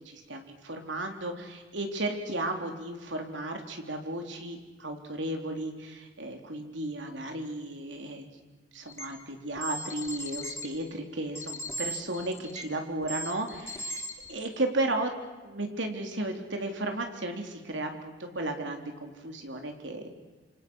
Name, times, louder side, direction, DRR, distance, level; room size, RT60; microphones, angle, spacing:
voice 1, 0.0-8.3 8.7-14.0 14.3-15.1 15.4-20.1, right 2 dB, 75° right, 4 dB, 3.7 m, -34 dB
sound 1, 8.9-9.1 9.6-10.7 11.3-12.7 13.0-14.4, equal, 15° left, 2.8 m, -37 dB
27.5 x 26.5 x 6.4 m, 1.3 s
head